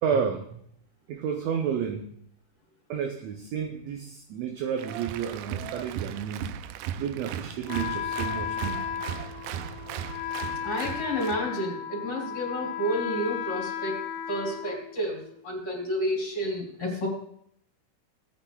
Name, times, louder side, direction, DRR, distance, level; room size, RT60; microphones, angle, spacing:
voice 1, 0.0-0.5 1.1-2.1 2.9-6.5 7.0-8.9, right 7 dB, 75° right, 3 dB, 1.6 m, -31 dB
Applause, 4.8-11.4, right 9 dB, 90° right, 2.2 m, -37 dB
Wind instrument woodwind instrument, 7.7-15.4, left 9 dB, 75° left, 1.9 m, -35 dB
voice 2, 10.6-14.0 14.3-17.1, equal, 45° left, -4 dB, 4.0 m, -30 dB
18.5 x 9.0 x 2.3 m, 0.69 s
omnidirectional pair, 3.7 m